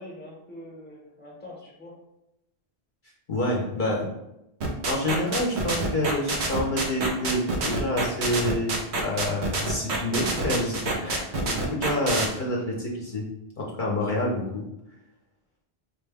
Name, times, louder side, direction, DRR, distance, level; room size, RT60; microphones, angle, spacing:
voice 1, 0.0-1.9 11.0-11.2, left 1 dB, 10° left, -3 dB, 0.8 m, -43 dB
voice 2, 3.3-4.1 4.9-13.2 13.6-14.6, left 1 dB, 55° left, -3 dB, 0.8 m, -28 dB
sound 1, 4.6-12.3, right 2 dB, 90° right, 1.0 m, -27 dB
4.8 x 2.1 x 3.4 m, 0.87 s
omnidirectional pair, 1.1 m